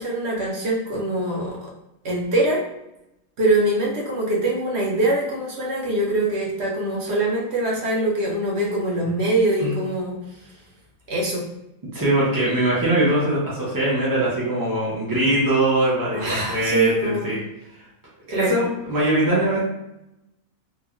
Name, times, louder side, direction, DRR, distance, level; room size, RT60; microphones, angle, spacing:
voice 1, 0.0-1.7 2.0-2.6 3.4-10.2 11.1-11.4 16.1-17.3 18.3-18.6, right 1 dB, 55° right, -3 dB, 0.9 m, -23 dB
voice 2, 11.9-17.4 18.3-19.7, right 1 dB, 35° right, -7 dB, 0.3 m, -22 dB
3.0 x 2.2 x 2.4 m, 0.88 s
omnidirectional pair, 1.5 m